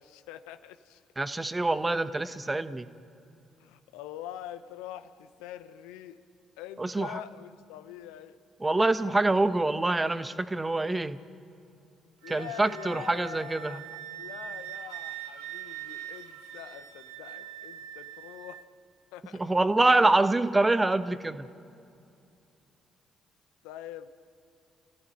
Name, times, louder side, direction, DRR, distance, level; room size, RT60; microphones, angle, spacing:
voice 1, 0.0-1.0 2.3-2.6 3.6-6.2 6.6-8.4 12.2-18.7 19.1-19.4 20.0-20.2 23.6-24.1, left 11 dB, 70° left, 11 dB, 0.8 m, -44 dB
voice 2, 1.2-2.9 6.8-7.2 8.6-11.2 12.3-13.8 19.3-21.5, right 2 dB, 20° right, 12 dB, 1.2 m, -25 dB
Wind instrument woodwind instrument, 12.2-18.6, right 12 dB, 70° right, 1.2 m, -42 dB
29.5 x 15.5 x 9.0 m, 2.6 s
figure-of-eight pair, 45°, 0 cm